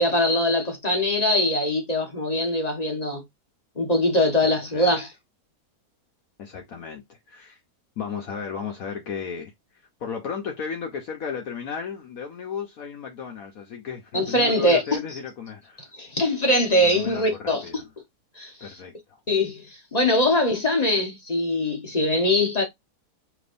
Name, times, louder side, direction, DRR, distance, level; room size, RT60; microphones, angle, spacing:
voice 1, 0.0-3.2 3.8-5.1 14.1-15.0 15.9-17.8 18.4-18.7 19.3-22.6, left 1 dB, 30° left, 1.0 m, -22 dB
voice 2, 4.4-5.0 6.4-7.6 8.0-9.5 10.0-15.9 16.8-17.9 18.6-19.2, left 6 dB, 65° left, 1.2 m, -34 dB
5.2 x 3.5 x 2.5 m
omnidirectional pair, 1.7 m